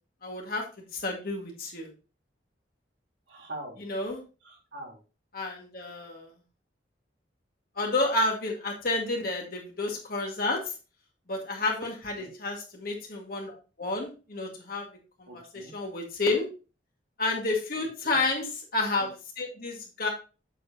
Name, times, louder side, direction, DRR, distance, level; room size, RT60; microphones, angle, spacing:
voice 1, 0.2-0.6 0.9-1.9 3.8-4.2 5.3-6.3 7.8-10.6 11.3-14.9 15.2-16.5 17.2-20.1, left 2 dB, 50° left, 0 dB, 2.0 m, -30 dB
voice 2, 3.3-3.8 4.4-5.0 12.2-12.3 15.3-15.7 17.7-18.2, right 1 dB, 75° right, -2 dB, 3.5 m, -43 dB
7.6 x 7.2 x 2.8 m, 0.32 s
head